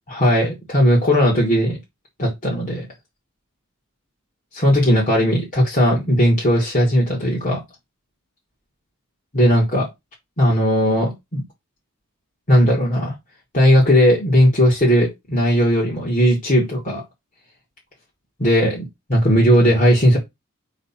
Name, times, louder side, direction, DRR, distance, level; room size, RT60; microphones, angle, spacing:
voice 1, 0.1-1.8 2.2-2.9 4.5-7.6 9.3-9.9 10.4-11.4 12.5-13.2 13.5-17.0 18.4-20.2, equal, 35° left, 2.2 m, -17 dB
4.9 x 4.0 x 5.8 m
head